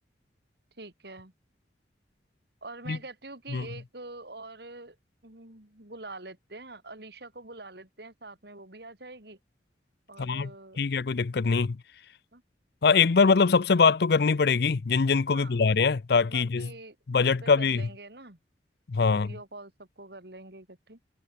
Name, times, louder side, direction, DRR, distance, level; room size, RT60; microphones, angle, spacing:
voice 1, 0.8-1.3 2.6-5.0 5.2-9.4 10.1-10.8 12.3-12.4 15.3-15.6 16.3-18.4 19.0-21.0, right 2 dB, 60° right, 3.5 m, -45 dB
voice 2, 10.2-10.5 10.8-11.8 12.8-16.7 17.1-17.8 18.9-19.3, left 5 dB, 60° left, 0.5 m, -23 dB
head